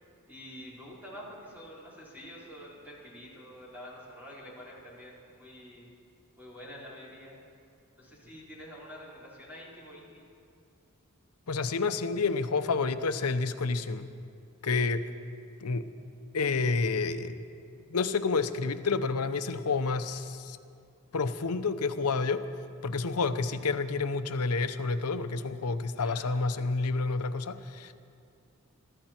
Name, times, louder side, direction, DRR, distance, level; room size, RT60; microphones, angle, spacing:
voice 1, 0.3-5.9 6.4-7.4 8.0-10.2 25.9-26.3, equal, 10° right, -7 dB, 4.4 m, -47 dB
voice 2, 11.5-14.1 14.6-15.0 15.6-15.9 16.3-17.4 17.9-20.6 21.1-22.5 22.8-27.9, left 4 dB, 90° left, 10 dB, 0.8 m, -29 dB
23.0 x 13.5 x 4.4 m, 2.4 s
head